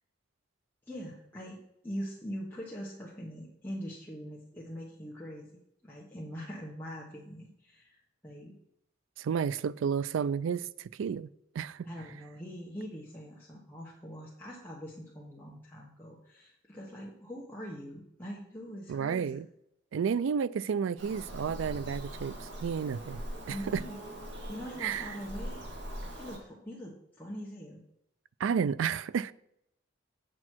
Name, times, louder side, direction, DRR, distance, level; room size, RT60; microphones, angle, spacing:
voice 1, 0.9-8.6 11.8-19.4 23.5-24.0 24.5-25.6 26.1-27.8, equal, 10° left, 1.1 m, -43 dB
voice 2, 9.2-11.3 11.5-11.9 18.9-19.5 19.9-23.8 24.8-25.2 28.4-29.3, right 7 dB, 80° right, 0.3 m, -31 dB
Bird vocalization bird call bird song, 21.0-26.4, equal, 60° right, 1.8 m, -42 dB
8.6 x 6.3 x 4.5 m
head